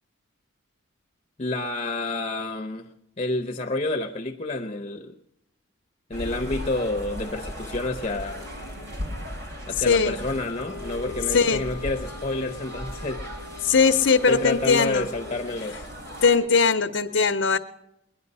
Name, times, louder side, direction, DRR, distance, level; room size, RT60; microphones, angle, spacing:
voice 1, 1.4-2.9 3.2-5.1 6.1-8.5 9.7-13.2 14.3-15.8, left 2 dB, 30° left, 6 dB, 0.7 m, -29 dB
sound 1, 6.1-16.4, equal, 55° right, 3.5 m, -37 dB
voice 2, 9.8-10.2 11.3-11.6 13.6-15.1 16.2-17.6, left 5 dB, 70° left, 5 dB, 0.7 m, -20 dB
sound 2, 10.6-15.5, left 7 dB, 10° right, 1.8 m, -43 dB
21.5 x 10.5 x 5.4 m, 0.86 s
head